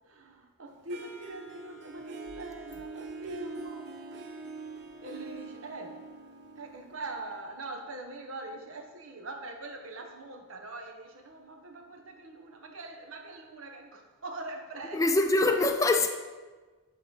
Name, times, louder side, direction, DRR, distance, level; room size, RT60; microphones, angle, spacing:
voice 1, 0.0-4.0 5.0-6.0 6.6-15.0, right 2 dB, 85° right, 3 dB, 1.0 m, -43 dB
Harp, 0.9-7.8, right 3 dB, 55° right, 0.7 m, -44 dB
voice 2, 14.9-16.1, left 2 dB, 15° left, 5 dB, 0.3 m, -24 dB
10.5 x 4.0 x 4.7 m, 1.3 s
head